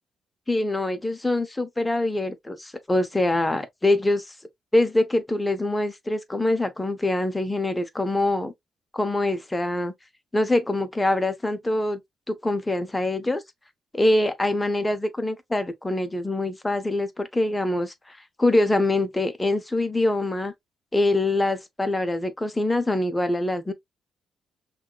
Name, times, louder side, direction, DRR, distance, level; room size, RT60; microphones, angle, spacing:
voice 1, 0.5-4.2 4.7-8.5 8.9-9.9 10.3-12.0 12.3-13.4 13.9-20.5 20.9-23.7, left 2 dB, 15° left, 0.7 m, -24 dB
5.6 x 2.4 x 2.2 m
cardioid pair, 110°, 0 cm